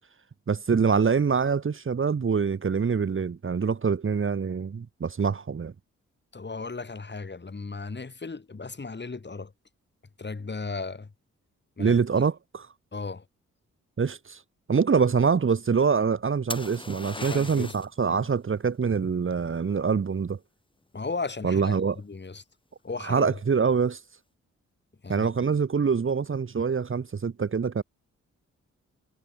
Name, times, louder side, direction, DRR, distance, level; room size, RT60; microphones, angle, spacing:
voice 1, 0.5-5.7 11.8-12.7 14.0-14.4 14.7-20.4 21.4-22.0 23.0-24.0 25.1-27.8, right 5 dB, 45° right, 1.6 m, -25 dB
voice 2, 6.3-9.5 10.2-11.1 11.8-12.0 12.9-13.2 17.2-17.8 18.1-18.2 20.9-22.4 22.8-23.4 25.0-25.5, left 4 dB, 35° left, 7.3 m, -36 dB
sound 1, 16.5-18.0 21.6-22.1, left 2 dB, 15° left, 2.0 m, -38 dB
cardioid pair, 60°, 30 cm